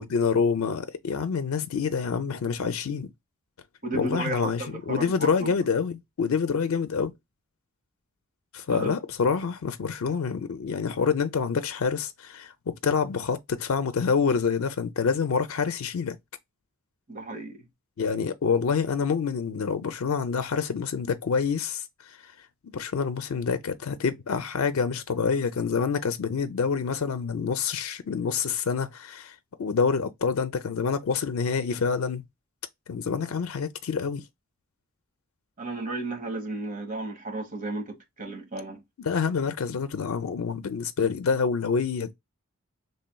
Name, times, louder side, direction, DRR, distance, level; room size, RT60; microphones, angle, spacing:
voice 1, 0.0-3.1 3.9-7.1 8.5-16.2 18.0-22.2 22.7-32.2 32.9-34.2 39.0-42.1, left 5 dB, 80° left, 0.5 m, -27 dB
voice 2, 3.8-5.5 8.7-8.9 17.1-17.7 35.6-38.8, right 2 dB, 40° right, 1.1 m, -34 dB
4.2 x 3.3 x 2.2 m
head